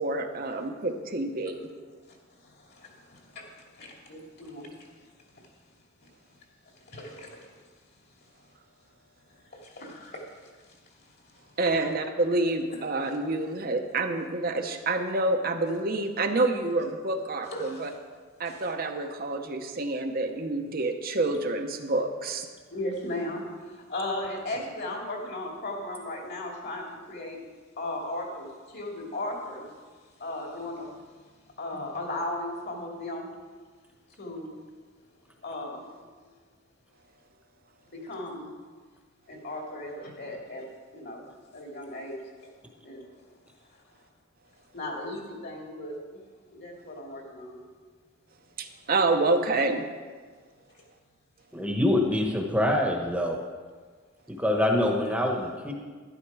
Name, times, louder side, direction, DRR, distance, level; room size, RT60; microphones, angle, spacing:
voice 1, 0.0-1.6 11.6-17.9 18.4-22.5 48.6-49.8, right 2 dB, 45° right, 5 dB, 0.9 m, -28 dB
voice 2, 2.4-4.7 5.3-5.5 6.9-7.6 9.5-10.5 11.7-11.8 12.7-13.1 17.4-17.9 18.5-18.6 22.7-27.4 27.8-29.7 30.2-30.9 31.6-33.3 34.2-34.5 35.4-35.8 37.9-38.5 39.3-41.2 41.5-42.2 42.8-43.1 44.7-46.2 46.5-47.6, left 1 dB, 55° left, 0 dB, 2.6 m, -36 dB
voice 3, 51.5-53.4 54.3-55.7, left 1 dB, 5° right, 1 dB, 1.2 m, -25 dB
12.0 x 11.5 x 4.8 m, 1.5 s
head